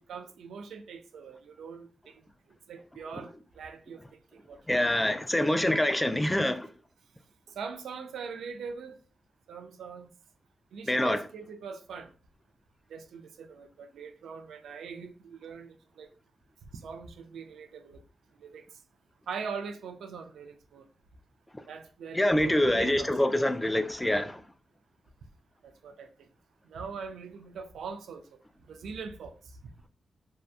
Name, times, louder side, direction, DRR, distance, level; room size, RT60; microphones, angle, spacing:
voice 1, 0.1-2.2 2.7-4.0 4.3-4.8 7.6-9.0 9.5-10.2 10.7-12.1 12.9-16.1 16.7-18.0 18.4-18.6 19.3-20.9 21.7-23.1 25.6-26.1 26.7-28.4 28.7-29.4 29.6-29.7, right 5 dB, 90° right, 0.3 m, -42 dB
voice 2, 4.7-6.7 10.9-11.2 22.1-24.4, left 1 dB, 15° left, 0.3 m, -25 dB
2.6 x 2.2 x 2.4 m
cardioid pair, 65°, 0 cm